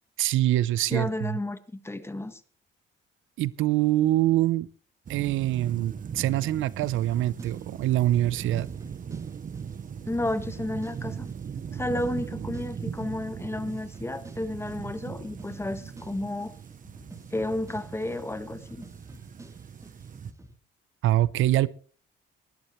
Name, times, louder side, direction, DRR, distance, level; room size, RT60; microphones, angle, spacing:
voice 1, 0.2-1.4 3.4-4.7 5.1-8.7 21.0-21.7, right 14 dB, 85° right, 0.7 m, -24 dB
voice 2, 0.9-2.4 10.0-11.3 11.7-16.5 17.3-18.8, left 1 dB, 10° left, 1.5 m, -32 dB
sound 1, 5.1-20.3, right 7 dB, 40° right, 0.8 m, -39 dB
sound 2, 6.8-20.5, right 1 dB, 15° right, 3.4 m, -51 dB
19.5 x 12.0 x 3.2 m
cardioid pair, 90°, 20 cm